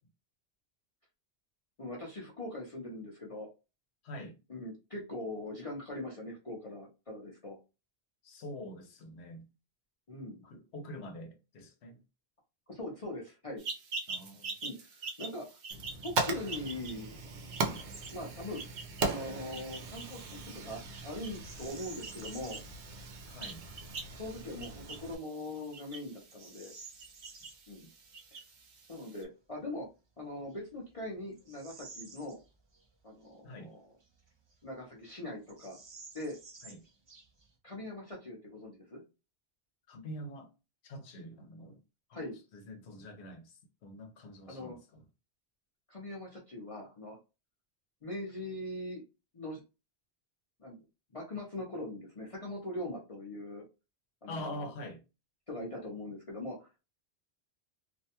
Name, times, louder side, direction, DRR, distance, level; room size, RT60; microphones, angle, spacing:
voice 1, 1.8-3.5 4.5-7.6 10.1-10.4 12.7-13.6 14.6-15.6 16.0-17.2 18.1-18.7 19.0-22.6 24.2-26.7 27.7-27.9 28.3-28.4 28.9-29.9 30.2-32.4 33.0-33.8 34.6-35.8 36.1-36.4 37.6-39.0 42.1-42.4 44.5-44.8 45.9-47.2 48.0-49.0 49.3-49.6 50.6-50.8 51.1-53.6 54.2-54.7 55.5-56.7, left 1 dB, 40° left, 0.6 m, -41 dB
voice 2, 4.0-4.4 8.2-9.5 10.4-12.0 14.1-14.6 17.6-17.9 23.3-23.6 27.8-27.9 33.4-33.8 36.6-36.8 39.9-40.5 40.8-41.8 42.1-42.3 42.5-45.0 54.3-55.0, left 1 dB, 80° left, 1.0 m, -45 dB
sound 1, 13.6-29.2, right 4 dB, 60° right, 0.8 m, -46 dB
Fire, 15.7-25.2, right 3 dB, 90° right, 0.9 m, -39 dB
Bird vocalization bird call bird song, 17.9-18.2 18.5-18.8 21.3-22.8 23.3-23.4 24.1-24.5 25.0-25.1 25.7-27.6 29.7-29.8 30.4-32.9 33.2-33.3 34.0-34.8 35.1-35.2 35.4-37.6, right 4 dB, 45° right, 0.3 m, -52 dB
2.6 x 2.2 x 2.7 m
omnidirectional pair, 1.1 m